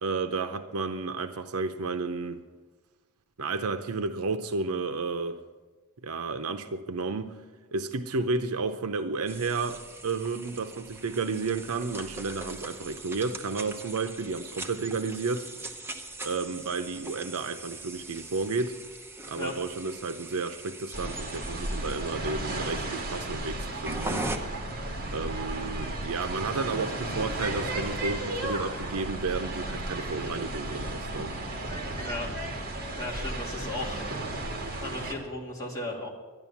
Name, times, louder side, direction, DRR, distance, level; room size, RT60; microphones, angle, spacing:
voice 1, 0.0-2.4 3.4-5.4 6.0-7.4 7.7-15.5 16.2-18.7 19.3-24.2 25.1-31.3, right 4 dB, 80° right, 8 dB, 0.7 m, -32 dB
sound 1, 9.3-24.4, right 2 dB, 10° right, 0.9 m, -41 dB
sound 2, 20.9-35.1, right 2 dB, 45° right, 2.1 m, -34 dB
voice 2, 33.0-34.1 34.8-36.1, left 2 dB, 15° left, -5 dB, 2.7 m, -35 dB
11.5 x 11.0 x 7.2 m, 1.3 s
head